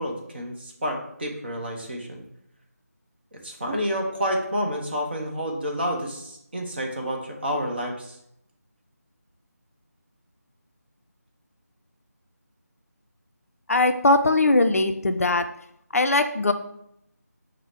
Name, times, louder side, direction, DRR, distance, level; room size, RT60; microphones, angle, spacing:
voice 1, 0.0-2.2 3.3-8.2, equal, 35° right, 2 dB, 0.6 m, -29 dB
voice 2, 13.7-15.4 15.9-16.5, left 2 dB, 55° left, 8 dB, 0.3 m, -20 dB
4.7 x 2.0 x 4.1 m, 0.76 s
figure-of-eight pair, 170°, 9 cm